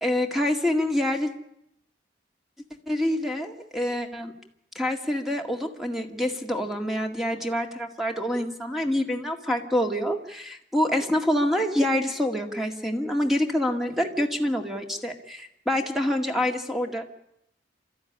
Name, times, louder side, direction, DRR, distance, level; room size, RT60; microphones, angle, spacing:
voice 1, 0.0-1.3 2.9-4.3 4.8-17.1, left 1 dB, ahead, 3 dB, 2.0 m, -26 dB
28.0 x 13.5 x 10.0 m, 0.78 s
head